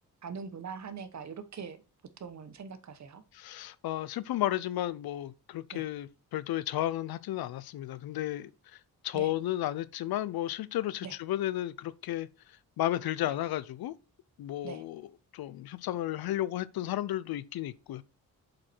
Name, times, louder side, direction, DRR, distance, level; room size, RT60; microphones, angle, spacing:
voice 1, 0.2-1.8 2.2-3.2 5.7-5.8 9.1-9.3 11.0-11.1 13.2-13.3 14.6-14.8, right 6 dB, 50° right, 1.1 m, -42 dB
voice 2, 3.3-8.5 9.0-12.3 12.8-13.9 14.4-15.0 15.3-18.0, left 13 dB, 85° left, 0.6 m, -33 dB
7.3 x 5.3 x 4.4 m
cardioid pair, 100°, 36 cm